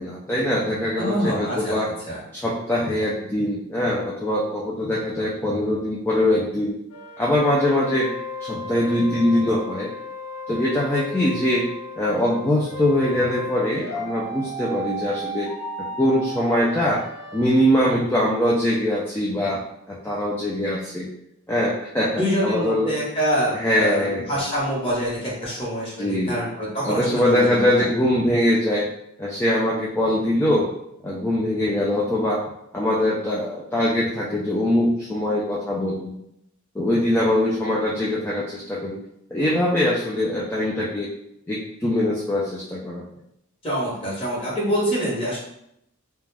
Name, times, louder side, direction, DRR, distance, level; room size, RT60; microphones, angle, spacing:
voice 1, 0.0-1.9 2.3-6.7 7.2-8.1 8.4-9.9 10.5-11.7 12.0-15.5 15.8-17.0 17.3-19.6 19.9-21.1 21.5-22.9 23.5-24.4 26.0-26.4 26.8-28.9 29.2-30.7 31.0-32.4 32.7-36.1 36.8-39.0 39.3-41.1 41.5-43.0, left 1 dB, 10° left, -6 dB, 0.3 m, -22 dB
voice 2, 1.0-1.7 2.1-2.2 22.1-27.8 43.6-45.4, equal, 25° left, -6 dB, 0.9 m, -25 dB
sound 1, 6.9-17.5, left 1 dB, 85° left, 0.5 m, -34 dB
2.3 x 2.1 x 3.2 m, 0.78 s
head